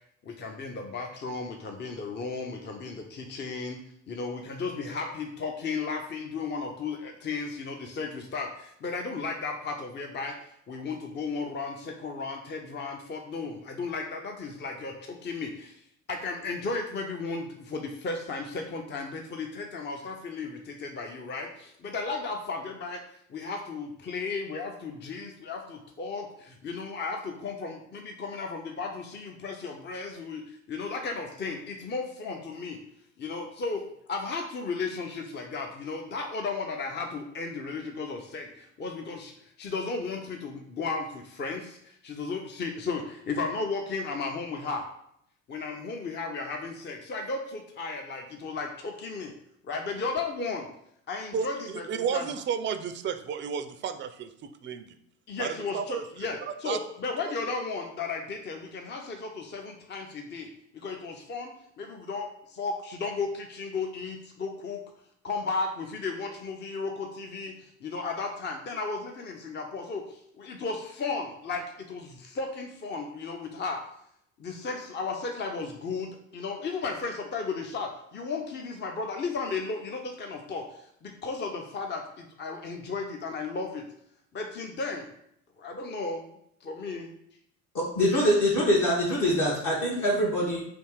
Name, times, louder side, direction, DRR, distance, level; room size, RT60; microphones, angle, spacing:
voice 1, 0.2-3.8 4.1-10.4 10.7-15.8 16.1-23.0 23.3-32.8 33.2-33.8 34.1-44.9 45.5-49.3 49.6-50.7 51.1-52.3 55.3-62.3 62.6-64.8 65.2-73.9 74.4-83.9 84.3-85.1 85.6-86.3 86.6-87.1 88.1-88.3, left 4 dB, 30° left, 4 dB, 0.6 m, -34 dB
voice 2, 51.3-54.3 54.6-54.8 55.4-56.0 56.7-56.8, right 7 dB, 30° right, 9 dB, 0.5 m, -32 dB
voice 3, 87.7-90.6, equal, 55° left, -6 dB, 1.5 m, -24 dB
3.5 x 2.8 x 4.6 m, 0.74 s
hypercardioid pair, 70°, 37 cm